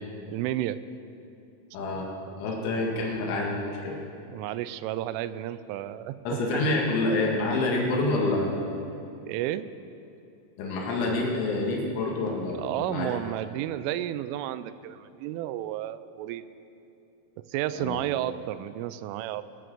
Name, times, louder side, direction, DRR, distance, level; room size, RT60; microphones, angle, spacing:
voice 1, 0.3-0.8 1.9-2.0 4.3-6.6 9.3-9.7 12.6-16.5 17.5-19.4, right 13 dB, 90° right, 14 dB, 3.1 m, -32 dB
voice 2, 1.7-2.1 2.4-4.0 6.3-8.5 10.6-13.2 17.8-18.0, left 2 dB, 75° left, -2 dB, 4.4 m, -27 dB
21.0 x 7.8 x 7.8 m, 2.8 s
omnidirectional pair, 5.5 m